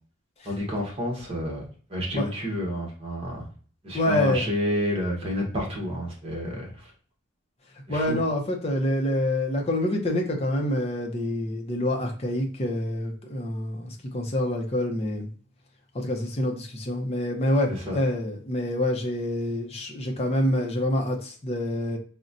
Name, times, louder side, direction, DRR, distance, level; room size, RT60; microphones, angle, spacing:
voice 1, 0.4-1.6 1.9-3.4 3.8-6.7 7.9-8.2 17.7-18.0, equal, 30° right, -1 dB, 1.0 m, -29 dB
voice 2, 3.9-4.5 7.9-15.3 15.9-22.0, left 1 dB, 30° left, 1 dB, 0.6 m, -26 dB
4.0 x 2.1 x 2.5 m, 0.43 s
head